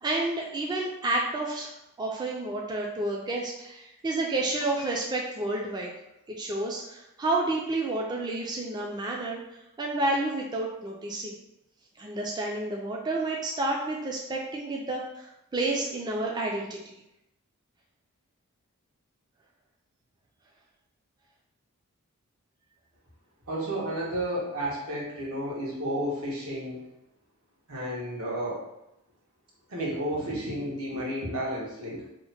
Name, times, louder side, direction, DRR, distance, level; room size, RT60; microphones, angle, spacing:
voice 1, 0.0-1.7 2.0-5.9 6.3-11.4 12.0-17.0, right 2 dB, 20° right, -1 dB, 0.3 m, -30 dB
voice 2, 23.5-26.8 27.7-28.6 29.7-32.0, right 1 dB, 80° right, -5 dB, 1.1 m, -32 dB
2.8 x 2.1 x 4.1 m, 0.87 s
head